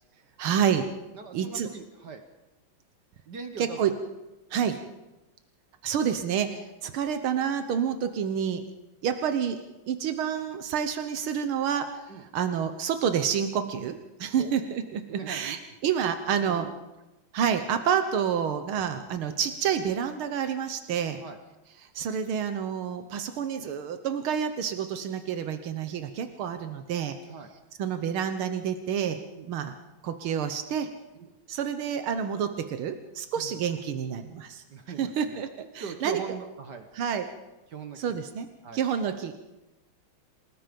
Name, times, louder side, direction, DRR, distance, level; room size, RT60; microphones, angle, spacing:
voice 1, 0.4-0.9 1.3-1.7 3.6-3.9 4.5-4.8 5.8-8.6 9.0-9.6 9.9-12.1 12.3-16.7 17.3-21.2 22.0-27.2 27.8-29.2 29.5-29.7 30.0-30.9 31.5-34.6 35.0-36.2 37.0-37.3 38.0-38.5 38.7-39.4, right 8 dB, 85° right, 8 dB, 1.9 m, -28 dB
voice 2, 1.1-2.2 3.3-3.8 4.6-4.9 12.1-12.3 14.4-14.5 15.1-15.6 16.5-16.7 18.9-19.0 21.2-21.4 27.3-27.5 29.3-29.5 31.1-31.3 33.4-33.6 34.7-35.4 35.8-36.9 37.7-38.2 38.6-38.8, right 5 dB, 55° right, 7 dB, 1.8 m, -41 dB
28.0 x 18.5 x 5.3 m, 1.0 s
omnidirectional pair, 2.3 m